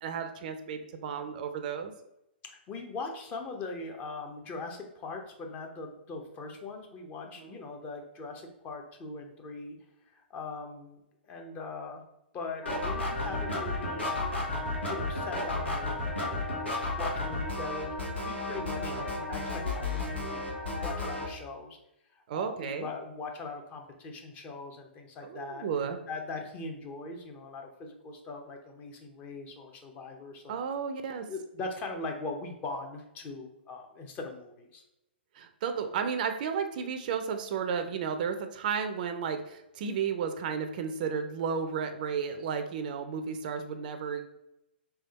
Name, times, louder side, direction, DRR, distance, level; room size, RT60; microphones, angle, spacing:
voice 1, 0.0-1.9 7.3-7.6 18.8-19.0 22.3-22.9 25.2-26.0 30.5-31.3 35.3-44.3, right 6 dB, 50° right, 8 dB, 0.5 m, -33 dB
voice 2, 2.4-9.8 10.1-11.0 11.2-12.0 12.3-14.2 14.8-16.6 17.0-21.8 22.1-25.6 26.1-30.6 31.3-34.8, left 3 dB, 25° left, 3 dB, 0.8 m, -41 dB
sound 1, 12.6-21.3, left 2 dB, 90° left, 1.5 m, -33 dB
3.5 x 3.4 x 4.1 m, 0.86 s
figure-of-eight pair, 120°, 6 cm